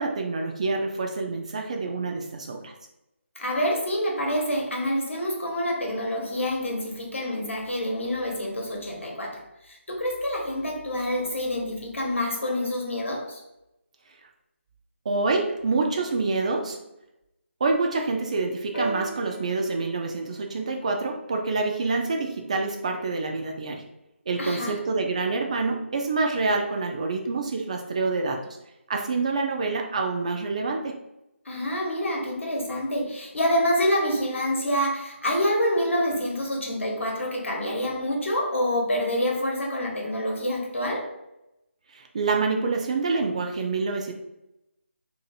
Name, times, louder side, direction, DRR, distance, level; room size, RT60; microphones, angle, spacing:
voice 1, 0.0-2.7 15.1-16.8 17.6-23.9 24.3-28.6 28.9-31.0 41.9-44.1, right 3 dB, 30° right, 2 dB, 0.3 m, -27 dB
voice 2, 3.4-13.4 24.4-24.8 31.4-41.1, equal, 70° left, 0 dB, 1.0 m, -27 dB
sound 1, 18.7-22.6 23.5-23.6, right 2 dB, 40° left, 0.9 m, -38 dB
2.7 x 2.5 x 4.1 m, 0.88 s
figure-of-eight pair, 155°, 7 cm